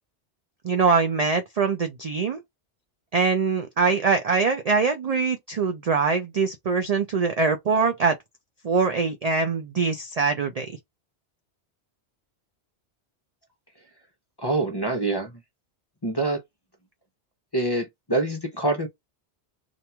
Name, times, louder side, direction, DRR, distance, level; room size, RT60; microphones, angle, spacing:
voice 1, 0.6-2.4 3.1-8.2 8.6-10.7, right 5 dB, 60° right, 0.4 m, -23 dB
voice 2, 14.4-15.3 16.0-16.4 17.5-18.9, right 2 dB, 30° left, 0.5 m, -25 dB
2.9 x 2.5 x 2.2 m
omnidirectional pair, 1.2 m